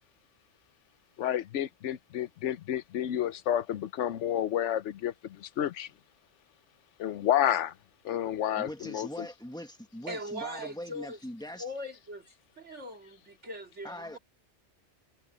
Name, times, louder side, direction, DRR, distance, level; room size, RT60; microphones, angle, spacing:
voice 1, 1.2-5.9 7.0-7.7 8.0-9.3, left 11 dB, 90° left, 1.0 m, -30 dB
voice 2, 8.6-11.7 13.8-14.2, left 1 dB, 5° left, 1.5 m, -41 dB
voice 3, 10.1-11.2 11.6-12.3 12.6-14.2, equal, 80° right, 2.8 m, -40 dB
omnidirectional pair, 1.2 m